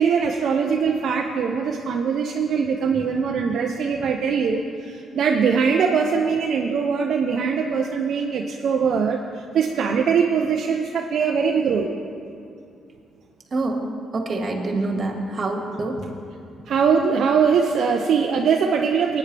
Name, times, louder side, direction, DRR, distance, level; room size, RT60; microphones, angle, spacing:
voice 1, 0.0-9.2 9.5-11.9 16.7-19.2, right 6 dB, 65° right, 2 dB, 0.6 m, -21 dB
voice 2, 13.5-13.8 14.1-16.1, right 2 dB, 40° right, 2 dB, 1.9 m, -26 dB
18.5 x 9.4 x 3.4 m, 2.4 s
cardioid pair, 90°, 0 cm